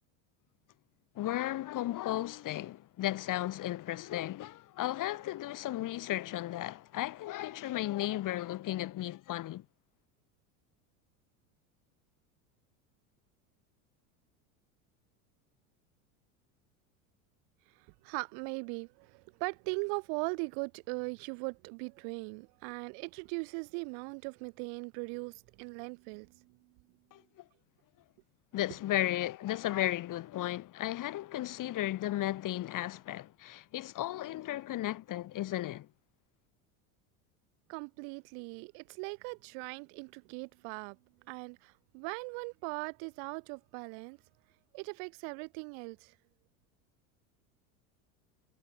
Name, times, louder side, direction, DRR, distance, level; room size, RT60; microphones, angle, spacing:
voice 1, 1.2-9.6 27.1-27.4 28.5-35.9, left 14 dB, 45° left, 2.5 m, -35 dB
voice 2, 18.0-26.6 37.7-41.0 41.3-44.2 44.7-46.1, right 40 dB or more, 65° right, 7.9 m, -39 dB
hypercardioid pair, 95°, 43 cm